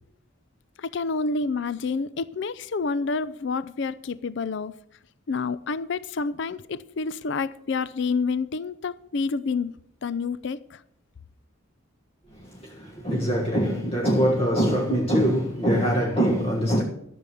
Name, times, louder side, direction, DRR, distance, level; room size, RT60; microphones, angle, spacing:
voice 1, 0.8-4.7 5.3-9.7 10.0-10.8, left 4 dB, 60° left, 0.5 m, -28 dB
voice 2, 12.6-16.8, equal, 30° left, 1.4 m, -23 dB
13.5 x 6.9 x 7.0 m
head